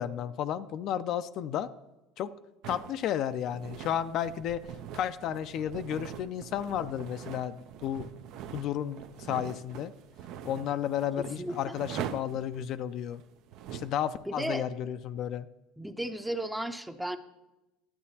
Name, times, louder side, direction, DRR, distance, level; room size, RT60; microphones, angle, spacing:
voice 1, 0.0-1.7 2.2-2.3 2.7-4.6 4.9-7.6 7.8-8.1 8.5-9.9 10.4-13.2 13.7-15.5, left 10 dB, 55° left, 11 dB, 0.3 m, -32 dB
sound 1, 2.6-14.0, right 9 dB, 65° right, 0.5 m, -43 dB
voice 2, 11.2-11.8 14.3-14.7 15.8-17.2, right 1 dB, 5° right, 10 dB, 0.5 m, -35 dB
11.0 x 8.5 x 2.8 m, 1.0 s
supercardioid pair, 100°, 0 cm